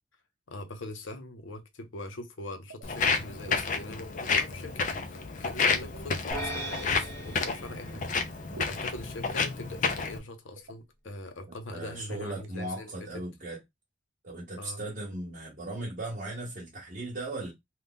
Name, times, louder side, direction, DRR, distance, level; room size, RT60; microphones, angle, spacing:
voice 1, 0.5-13.2 14.6-14.8, left 2 dB, 80° left, 0.7 m, -42 dB
sound 1, 2.7-3.2 3.4-3.6 4.0-5.2 5.8-6.9 8.5-8.9 9.9-10.3 10.6-10.8 11.1-11.2 11.4-11.6 12.3-12.5, right 2 dB, 80° right, 0.6 m, -49 dB
Walk footsteps, 2.8-10.2, left 5 dB, 40° left, 0.4 m, -30 dB
sound 2, 6.3-8.8, right 1 dB, 15° left, 1.0 m, -39 dB
voice 2, 11.7-13.6 14.2-17.5, right 2 dB, 45° right, 0.8 m, -37 dB
2.7 x 2.3 x 3.5 m
head